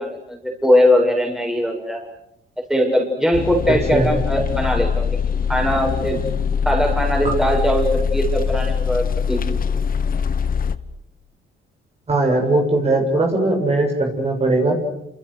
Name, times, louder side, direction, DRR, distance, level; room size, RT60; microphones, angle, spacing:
voice 1, 0.0-2.0 2.7-6.2 6.6-9.4, equal, 5° right, 0 dB, 7.6 m, -20 dB
sound 1, 3.3-10.8, left 6 dB, 45° left, 1.3 m, -22 dB
voice 2, 12.1-14.8, right 2 dB, 30° right, 2 dB, 7.4 m, -19 dB
29.5 x 28.0 x 6.6 m, 0.82 s
cardioid pair, 90°, 20 cm